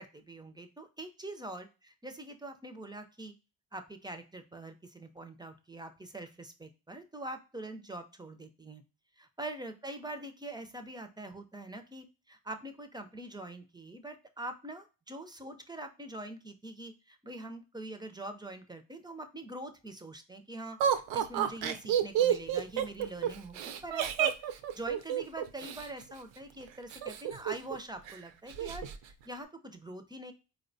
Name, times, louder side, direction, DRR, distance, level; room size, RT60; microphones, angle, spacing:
voice 1, 0.0-1.7 2.0-3.3 3.7-8.8 9.2-28.9 29.2-30.3, right 1 dB, 10° right, 7 dB, 0.3 m, -44 dB
Laughter, 20.8-25.9 26.9-27.8 28.1-28.2 28.5-29.0, right 9 dB, 75° right, 0.5 m, -30 dB
4.0 x 2.1 x 2.6 m, 0.31 s
supercardioid pair, 70°, 45 cm